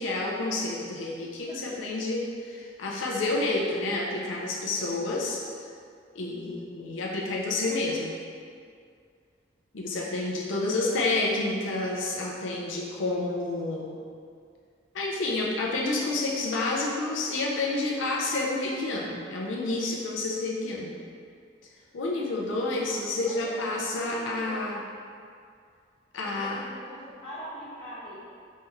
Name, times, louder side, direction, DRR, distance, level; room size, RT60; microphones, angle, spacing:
voice 1, 0.0-5.7 6.2-8.1 9.7-14.0 14.9-21.0 21.9-24.8 26.1-26.6, left 2 dB, 85° left, -3 dB, 0.5 m, -29 dB
voice 2, 22.8-23.5 24.0-24.6 26.3-28.2, equal, 30° left, -10 dB, 0.6 m, -43 dB
3.2 x 3.0 x 3.5 m, 2.3 s
head